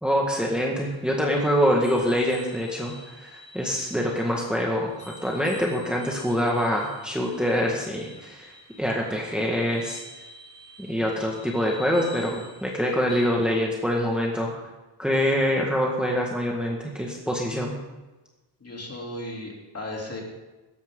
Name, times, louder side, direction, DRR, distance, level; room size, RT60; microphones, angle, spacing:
voice 1, 0.0-8.5 8.8-10.0 10.8-14.5 15.0-17.8, equal, ahead, -2 dB, 1.6 m, -25 dB
sound 1, 0.8-13.2, left 1 dB, 15° left, 5.7 m, -48 dB
voice 2, 18.6-20.2, left 1 dB, 35° left, -1 dB, 3.3 m, -35 dB
17.0 x 13.5 x 3.8 m, 1.1 s
wide cardioid pair, 155°, 42 cm